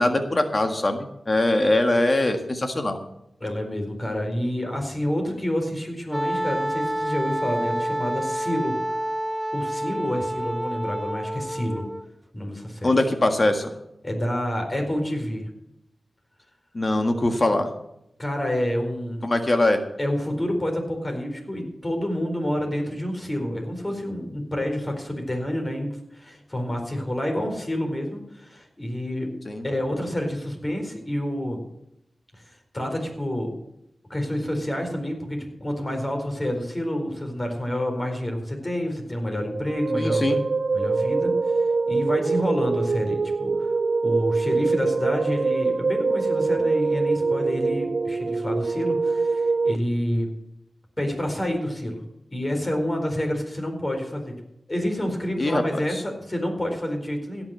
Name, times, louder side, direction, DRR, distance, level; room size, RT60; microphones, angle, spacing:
voice 1, 0.0-3.0 12.8-13.7 16.7-17.7 19.2-19.8 29.5-29.6 40.0-40.4 55.4-56.0, left 1 dB, 45° left, 6 dB, 1.7 m, -22 dB
voice 2, 3.4-8.7 9.5-11.8 12.3-12.9 14.0-15.5 18.2-19.2 20.0-29.3 29.6-31.6 32.4-32.5 32.7-33.5 34.1-40.2 40.7-43.7 44.0-50.3 51.0-52.0 52.3-54.3 54.7-57.4, equal, 25° left, 3 dB, 4.4 m, -28 dB
Wind instrument woodwind instrument, 6.1-12.1, right 1 dB, 15° right, 0.7 m, -28 dB
sound 1, 39.5-49.8, right 4 dB, 60° right, 0.5 m, -24 dB
16.5 x 6.1 x 7.6 m, 0.80 s
cardioid pair, 45°, 0 cm